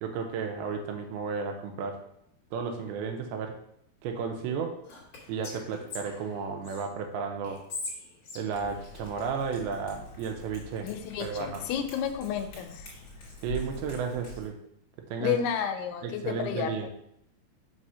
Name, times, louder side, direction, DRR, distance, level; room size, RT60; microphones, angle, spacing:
voice 1, 0.0-2.0 2.5-3.6 4.0-4.8 5.3-7.7 8.4-10.9 11.2-11.7 13.4-14.6 15.0-15.4 16.0-16.9, right 5 dB, 80° right, 4 dB, 2.5 m, -33 dB
Whispering, 4.8-6.8 7.4-9.6, left 3 dB, 60° left, 1.2 m, -42 dB
Cat, 8.5-14.5, left 2 dB, 40° left, 2.8 m, -45 dB
voice 2, 10.8-12.9 15.2-16.9, left 8 dB, 85° left, 6 dB, 2.7 m, -31 dB
6.4 x 3.5 x 5.5 m, 0.75 s
omnidirectional pair, 4.7 m